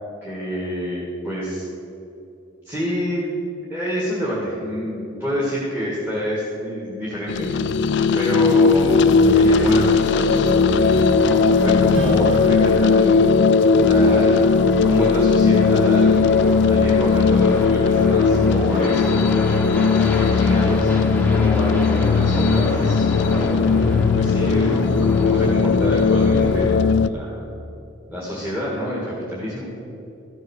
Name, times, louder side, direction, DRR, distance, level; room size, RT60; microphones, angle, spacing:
voice 1, 0.2-1.7 2.6-3.3 3.7-7.5 8.1-11.2 11.5-13.2 13.8-14.6 14.8-16.2 16.7-19.4 20.1-20.9 21.3-23.9 24.1-27.4 28.1-29.7, equal, 10° right, -7 dB, 1.9 m, -27 dB
sound 1, 7.3-27.1, left 4 dB, 55° left, 0.3 m, -17 dB
sound 2, 10.0-26.8, left 1 dB, 10° left, 0.9 m, -30 dB
Strum, 11.9-16.9, left 1 dB, 65° right, 1.9 m, -35 dB
14.5 x 6.5 x 6.5 m, 2.8 s
head